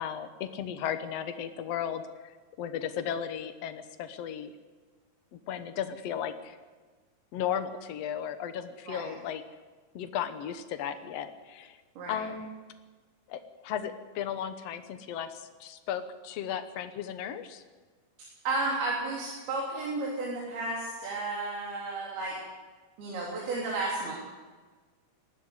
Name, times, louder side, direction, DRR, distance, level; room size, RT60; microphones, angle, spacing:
voice 1, 0.0-2.3 2.6-4.5 5.3-6.6 7.3-9.4 9.9-11.8 12.1-12.5 13.3-17.6, left 9 dB, 80° left, 9 dB, 1.4 m, -35 dB
voice 2, 18.5-22.4 23.0-24.1, right 2 dB, 75° right, -4 dB, 5.4 m, -32 dB
19.5 x 13.5 x 9.7 m, 1.4 s
omnidirectional pair, 4.5 m